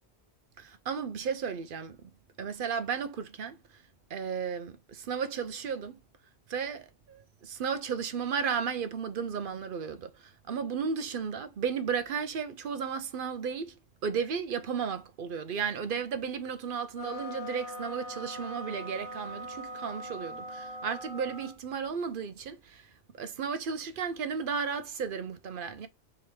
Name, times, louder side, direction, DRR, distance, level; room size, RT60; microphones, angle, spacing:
voice 1, 0.6-2.1 2.4-3.6 4.1-6.0 6.5-13.7 14.0-22.9 23.2-25.9, right 6 dB, 60° right, 0.7 m, -34 dB
sound 1, 16.9-21.6, equal, 35° left, 0.9 m, -41 dB
3.8 x 2.9 x 3.3 m
omnidirectional pair, 1.1 m